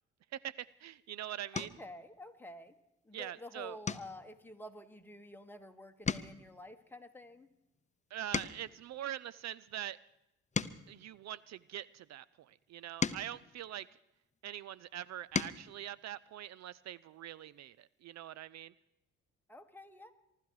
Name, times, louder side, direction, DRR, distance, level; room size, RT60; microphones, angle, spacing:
voice 1, 0.3-1.7 3.1-3.8 8.1-10.0 10.9-13.9 14.4-18.7, right 12 dB, 65° right, 20 dB, 0.5 m, -43 dB
sound 1, 0.7-0.9 1.5-1.9 2.4-2.8 3.1-3.3 3.8-5.6 5.9-8.8 9.5-11.9 12.6-14.4 15.0-15.7 17.1-17.2 17.5-17.7, left 5 dB, 25° left, 0.7 m, -40 dB
voice 2, 1.5-2.8 3.0-7.5 19.5-20.1, left 1 dB, 5° left, 6 dB, 1.5 m, -50 dB
24.0 x 12.5 x 4.8 m, 0.89 s
cardioid pair, 90°, 30 cm